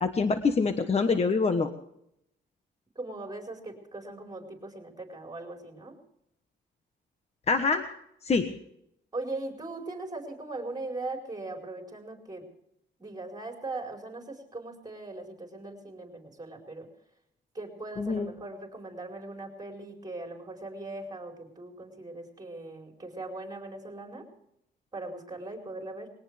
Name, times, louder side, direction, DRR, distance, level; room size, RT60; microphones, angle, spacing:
voice 1, 0.0-1.7 7.5-7.9 8.2-8.5 18.0-18.3, left 4 dB, 30° left, 7 dB, 1.2 m, -25 dB
voice 2, 2.9-6.0 9.1-12.5 13.0-16.9 17.5-24.3 24.9-26.1, right 2 dB, 20° right, 1 dB, 4.9 m, -39 dB
21.5 x 18.0 x 3.4 m, 0.76 s
cardioid pair, 105°, 20 cm